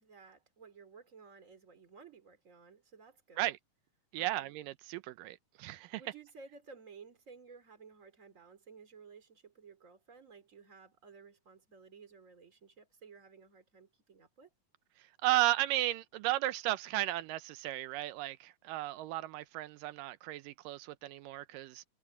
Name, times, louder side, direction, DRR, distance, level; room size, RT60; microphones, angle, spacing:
voice 1, 0.0-3.6 4.2-4.6 6.0-14.5, right 5 dB, 25° right, 3.0 m, -55 dB
voice 2, 4.1-6.0 15.2-21.8, right 16 dB, 85° right, 2.4 m, -34 dB
omnidirectional pair, 3.8 m